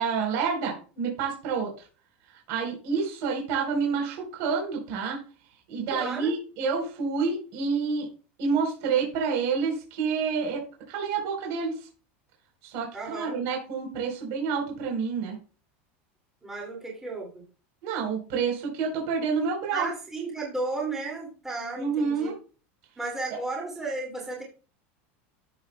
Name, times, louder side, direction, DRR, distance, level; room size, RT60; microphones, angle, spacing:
voice 1, 0.0-1.7 2.5-5.2 5.7-8.1 8.4-11.8 12.6-15.4 17.8-19.9 21.7-22.4, right 5 dB, 45° right, 0 dB, 3.9 m, -28 dB
voice 2, 5.9-6.3 12.9-13.3 16.4-17.4 19.7-22.3 23.0-24.4, right 3 dB, 5° right, -2 dB, 2.4 m, -34 dB
15.0 x 7.2 x 2.2 m, 0.36 s
supercardioid pair, 175°, 7 cm